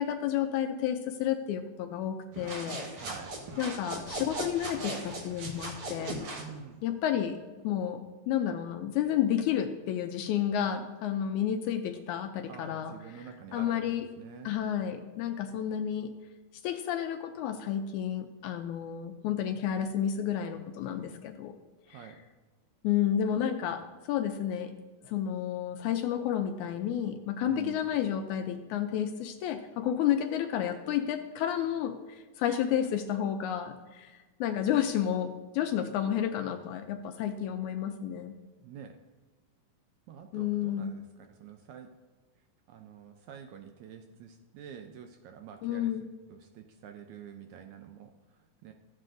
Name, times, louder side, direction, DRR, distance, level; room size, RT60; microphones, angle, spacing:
voice 1, 0.0-2.8 3.6-6.2 6.8-7.4 7.6-12.9 13.5-14.0 14.5-16.1 16.6-21.5 21.9-22.0 22.8-24.7 25.0-32.0 32.4-38.4 40.3-40.9 45.6-46.0, left 10 dB, 80° left, 6 dB, 1.8 m, -31 dB
sound 1, 2.3-6.5, right 1 dB, 55° right, 1.9 m, -38 dB
voice 2, 3.0-3.4 6.4-6.8 12.5-13.8 14.2-14.5 21.9-22.2 27.5-27.9 38.6-39.0 40.1-41.9 42.7-45.9 46.3-48.7, right 8 dB, 80° right, 5 dB, 1.7 m, -47 dB
14.0 x 7.5 x 2.5 m, 1.3 s
omnidirectional pair, 3.7 m